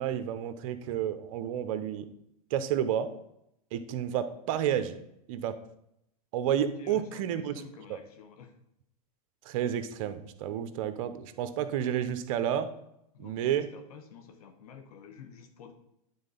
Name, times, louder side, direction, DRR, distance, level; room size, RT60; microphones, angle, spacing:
voice 1, 0.0-2.1 2.5-3.1 3.7-5.0 5.3-5.6 6.3-7.5 7.9-8.0 9.4-12.7 13.2-13.7, right 10 dB, 60° right, 11 dB, 0.8 m, -30 dB
voice 2, 6.6-8.6 13.1-15.7, left 7 dB, 75° left, 6 dB, 1.1 m, -49 dB
9.6 x 3.8 x 5.5 m, 0.79 s
hypercardioid pair, 125°, 20 cm